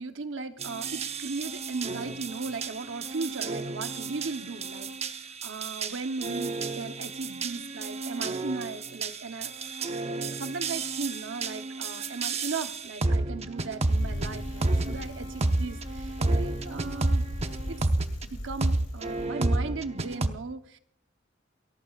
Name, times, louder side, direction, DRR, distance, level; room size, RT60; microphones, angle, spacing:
voice 1, 0.0-9.9 10.3-17.3 17.7-17.9 18.2-20.8, right 4 dB, 85° right, 8 dB, 1.0 m, -37 dB
sound 1, 0.6-18.3 18.6-20.3, right 2 dB, 35° right, 0.8 m, -31 dB
Bicycle, 13.8-19.3, equal, 90° left, 3.2 m, -39 dB
28.5 x 14.0 x 2.4 m, 0.68 s
head